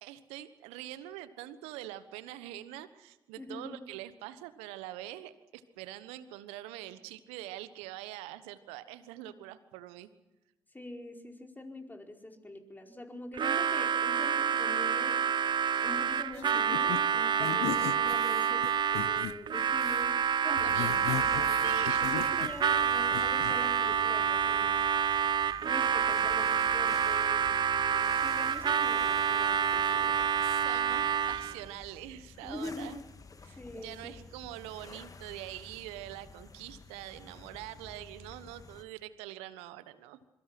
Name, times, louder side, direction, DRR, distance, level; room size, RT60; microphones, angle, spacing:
voice 1, 0.0-10.1 20.4-22.2 30.4-33.0 33.4-40.2, right 14 dB, 75° right, 13 dB, 1.3 m, -44 dB
voice 2, 3.4-3.8 10.7-15.2 15.8-18.6 18.9-24.8 25.6-30.1 32.4-32.9 33.6-34.1, left 1 dB, 20° left, 2 dB, 5.0 m, -44 dB
Harmonica, 13.3-31.6, right 7 dB, 50° right, 0.8 m, -28 dB
sound 1, 16.3-17.0 17.4-19.3 19.7-20.1 20.6-22.8 23.1-23.5, left 14 dB, 75° left, 0.9 m, -38 dB
sound 2, 20.7-38.8, left 4 dB, 35° left, 1.9 m, -51 dB
26.0 x 23.5 x 6.1 m, 0.98 s
hypercardioid pair, 45°, 10 cm